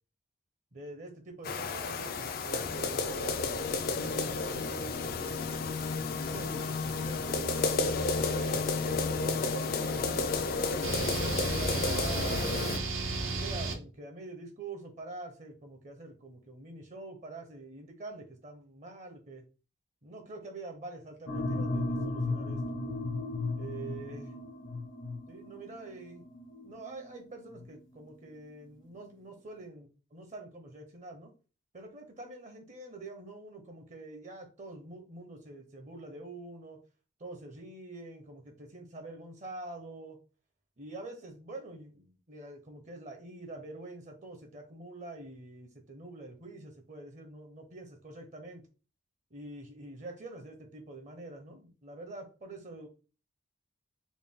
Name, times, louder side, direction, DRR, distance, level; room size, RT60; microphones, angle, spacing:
voice 1, 0.7-3.1 3.4-5.4 6.1-12.8 13.2-19.4 20.0-22.6 23.6-24.3 25.3-26.2 26.6-31.3 31.7-36.8 37.2-40.2 40.8-48.6 49.3-52.9, right 2 dB, 35° right, 4 dB, 0.7 m, -46 dB
sound 1, 1.4-12.8, left 4 dB, 45° left, 0.4 m, -31 dB
sound 2, 10.8-13.7, right 3 dB, 80° right, 0.7 m, -33 dB
sound 3, 21.3-27.8, left 2 dB, 65° left, 0.8 m, -35 dB
4.0 x 2.2 x 3.5 m, 0.34 s
head